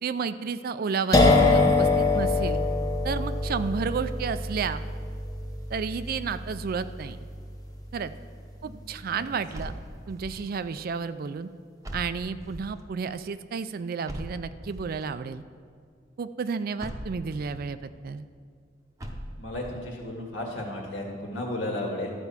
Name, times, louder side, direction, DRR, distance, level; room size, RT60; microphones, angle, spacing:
voice 1, 0.0-2.6 3.0-4.8 5.7-7.2 7.9-8.1 8.6-9.7 10.1-11.5 11.9-15.4 16.2-18.3, right 5 dB, 50° right, 13 dB, 0.4 m, -31 dB
sound 1, 1.1-8.7, left 3 dB, 20° left, 0.9 m, -25 dB
sound 2, 9.5-10.5 11.8-12.8 14.1-15.0 16.8-17.7 19.0-19.8, equal, 15° right, 0.8 m, -40 dB
voice 2, 19.4-22.1, left 1 dB, 75° left, 0 dB, 1.9 m, -34 dB
13.0 x 4.5 x 7.1 m, 2.1 s
head